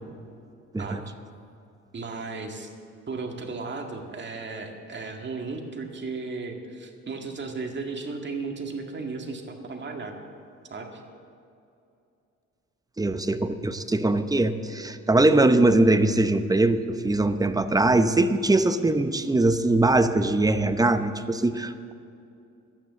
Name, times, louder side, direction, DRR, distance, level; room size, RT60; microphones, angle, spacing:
voice 1, 0.8-1.1 1.9-2.7 3.1-10.2 10.7-11.0, right 3 dB, 35° right, 2 dB, 1.9 m, -35 dB
voice 2, 13.0-21.9, right 2 dB, 10° right, 10 dB, 0.7 m, -22 dB
11.5 x 9.4 x 7.5 m, 2.6 s
cardioid pair, 90°, 30 cm